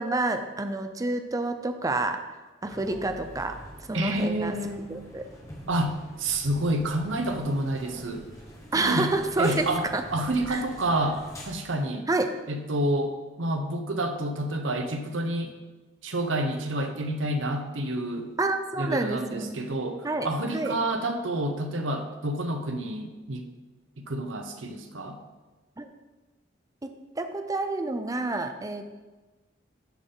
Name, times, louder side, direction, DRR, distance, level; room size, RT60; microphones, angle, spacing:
voice 1, 0.0-2.2 2.6-3.5 3.9-4.5 4.9-5.3 8.7-9.6 9.9-10.0 10.5-10.6 12.1-12.3 18.4-19.6 20.0-20.8 25.8-25.9 26.8-28.8, right 2 dB, 20° right, 7 dB, 0.5 m, -28 dB
sound 1, 2.6-11.5, equal, 15° left, 1.3 m, -45 dB
voice 2, 3.9-4.9 5.7-5.9 6.2-8.3 8.7-9.1 9.4-12.1 12.5-15.6 16.0-18.3 18.8-23.5 24.0-25.2, right 1 dB, 85° right, 6 dB, 0.8 m, -29 dB
11.5 x 4.2 x 3.8 m, 1.2 s
head